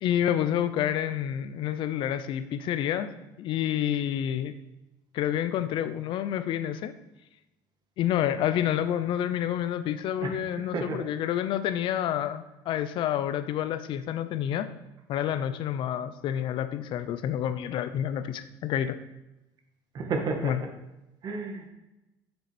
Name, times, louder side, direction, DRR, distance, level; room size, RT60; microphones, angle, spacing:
voice 1, 0.0-3.1 3.4-4.5 5.1-6.9 8.0-14.7 15.1-19.0 20.4-20.6, left 10 dB, 60° left, 12 dB, 0.7 m, -28 dB
voice 2, 10.2-11.1 19.9-20.6 21.2-21.7, right 4 dB, 45° right, 3 dB, 1.8 m, -32 dB
7.7 x 7.1 x 5.2 m, 0.96 s
supercardioid pair, 105°, 10 cm